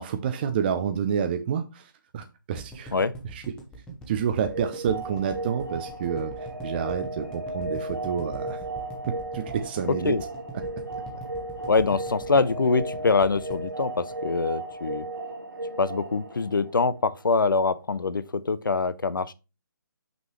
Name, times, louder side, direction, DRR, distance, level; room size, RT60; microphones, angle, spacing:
voice 1, 0.0-2.9 3.3-3.5 4.1-8.6 9.1-10.2, right 8 dB, 30° right, 0.5 m, -29 dB
sound 1, 2.6-14.7 15.0-15.1 15.3-15.4, right 1 dB, 5° left, 1.0 m, -43 dB
sound 2, 4.5-17.3, right 1 dB, 70° right, 1.4 m, -35 dB
voice 2, 11.7-15.0 15.8-19.3, left 4 dB, 70° left, 0.6 m, -24 dB
6.0 x 5.4 x 3.0 m
figure-of-eight pair, 140°, 11 cm